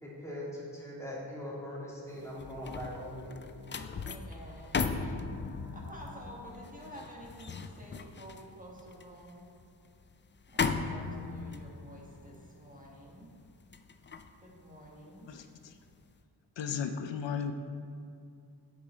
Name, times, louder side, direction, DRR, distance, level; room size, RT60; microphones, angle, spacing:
voice 1, 0.0-3.5, left 1 dB, 5° left, -7 dB, 2.6 m, -41 dB
sound 1, 2.2-15.5 15.9-16.2, left 4 dB, 30° left, 0.4 m, -38 dB
voice 2, 4.0-5.2 5.7-9.5 10.5-13.3 14.4-15.3, equal, 20° right, -3 dB, 1.6 m, -50 dB
voice 3, 15.3-15.8 16.6-17.5, left 7 dB, 80° left, 7 dB, 0.6 m, -35 dB
9.4 x 8.0 x 4.4 m, 2.5 s
wide cardioid pair, 125°, 43 cm